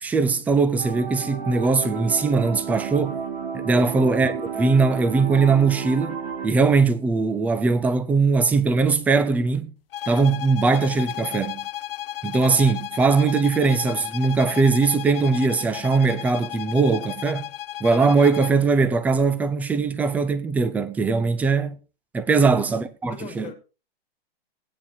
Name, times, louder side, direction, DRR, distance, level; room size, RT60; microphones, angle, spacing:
voice 1, 0.0-3.2 3.5-6.2 6.4-9.7 10.1-11.6 12.2-17.5 17.8-21.8 22.1-23.5, right 4 dB, 5° right, 0.4 m, -20 dB
sound 1, 0.8-6.5, right 6 dB, 50° right, 3.4 m, -32 dB
sound 2, 9.9-18.6, left 13 dB, 65° left, 0.5 m, -34 dB
voice 2, 23.0-23.5, left 9 dB, 20° left, 1.8 m, -40 dB
18.0 x 9.1 x 2.7 m
hypercardioid pair, 135°, 30 cm